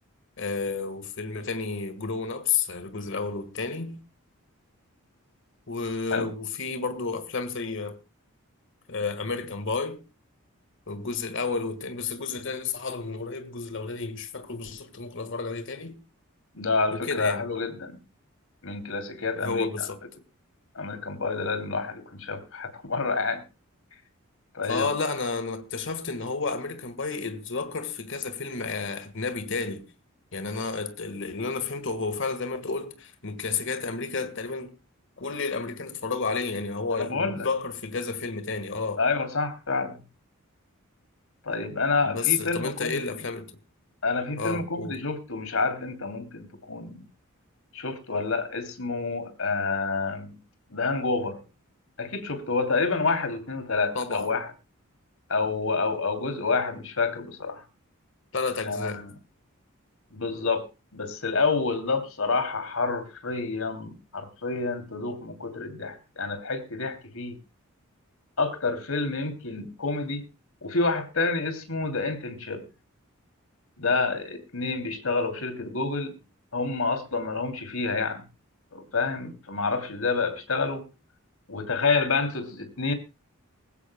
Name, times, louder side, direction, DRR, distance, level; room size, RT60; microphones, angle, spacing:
voice 1, 0.4-4.0 5.7-8.0 8.9-10.0 10.9-16.0 16.9-17.5 19.4-20.0 24.6-29.9 30.3-34.7 35.2-39.0 42.0-43.5 44.4-45.0 53.9-54.3 58.3-59.0, left 4 dB, 60° left, 1.6 m, -31 dB
voice 2, 16.5-18.0 18.6-19.7 20.7-23.4 24.5-24.9 36.9-37.5 39.0-40.0 41.4-43.0 44.0-47.0 47.7-50.4 50.7-51.4 52.0-54.5 55.3-57.6 58.7-59.1 60.1-60.6 60.9-67.4 68.4-70.2 70.6-72.6 73.8-76.1 76.5-78.2 78.7-80.8 81.5-82.9, left 4 dB, 75° left, 2.8 m, -28 dB
20.5 x 16.0 x 2.2 m
head